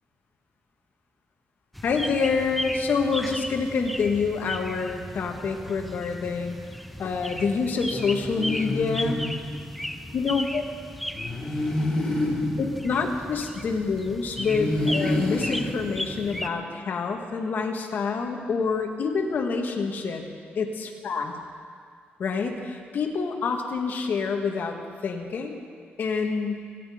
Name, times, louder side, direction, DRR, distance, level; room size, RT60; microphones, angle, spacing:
sound 1, 1.7-16.5, equal, ahead, 0.6 m, -36 dB
voice 1, 1.8-6.6 7.0-9.2 10.1-10.6 12.6-20.2 20.6-21.3 22.2-24.8 25.0-25.6 26.0-26.6, left 5 dB, 55° left, 2 dB, 1.7 m, -27 dB
sound 2, 7.9-10.0 11.1-13.9 14.4-16.6, left 1 dB, 15° left, 3.2 m, -29 dB
26.0 x 9.9 x 5.1 m, 2.1 s
wide cardioid pair, 150°, 4 cm